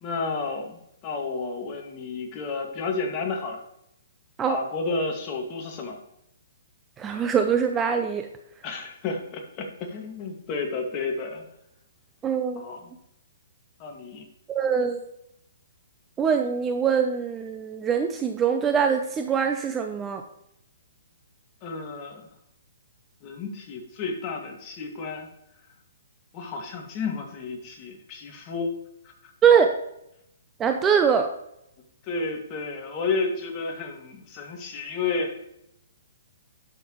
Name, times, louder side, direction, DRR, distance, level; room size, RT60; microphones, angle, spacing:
voice 1, 0.0-3.6 4.5-6.0 8.6-11.5 12.6-12.9 13.8-14.3 21.6-22.3 23.2-25.3 26.3-28.7 29.0-29.3 32.0-35.5, left 4 dB, 30° left, 1 dB, 1.9 m, -31 dB
voice 2, 7.0-8.3 12.2-12.6 14.5-15.0 16.2-20.2 29.4-29.7 30.6-31.3, right 7 dB, 15° right, 6 dB, 0.5 m, -23 dB
11.5 x 5.9 x 3.0 m, 0.78 s
hypercardioid pair, 150°, 0 cm